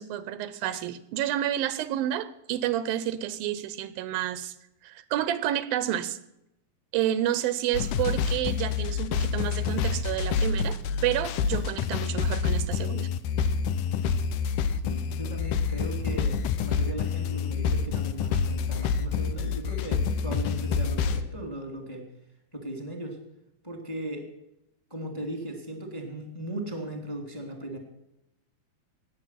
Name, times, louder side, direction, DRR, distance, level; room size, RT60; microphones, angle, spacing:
voice 1, 0.0-4.5 4.8-6.2 6.9-13.1, right 12 dB, 85° right, 15 dB, 2.4 m, -30 dB
sound 1, 7.7-21.2, left 6 dB, 75° left, 2.2 m, -27 dB
voice 2, 14.8-22.1 22.5-23.2 23.6-24.3 24.9-27.8, right 1 dB, 10° left, 4 dB, 2.0 m, -37 dB
18.5 x 7.5 x 5.8 m, 0.85 s
omnidirectional pair, 4.2 m